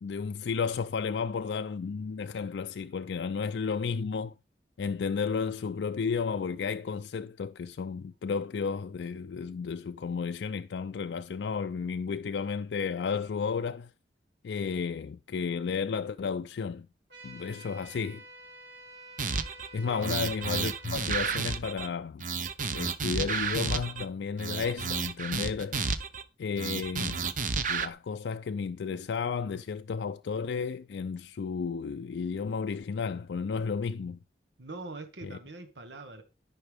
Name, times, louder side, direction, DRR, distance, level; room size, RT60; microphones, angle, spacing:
voice 1, 0.0-4.3 4.8-13.9 14.4-16.9 17.2-18.2 19.7-22.3 22.7-25.9 26.4-27.2 27.7-34.2 35.2-35.4, left 5 dB, 85° left, 0.4 m, -33 dB
sound 1, 17.1-21.3, right 2 dB, 70° right, 4.4 m, -49 dB
sound 2, 19.2-19.7 20.0-21.9 22.2-24.0 24.4-26.2 26.6-27.9, right 5 dB, 45° right, 0.8 m, -31 dB
voice 2, 34.6-36.2, right 2 dB, 90° right, 1.5 m, -43 dB
13.0 x 5.7 x 3.4 m
head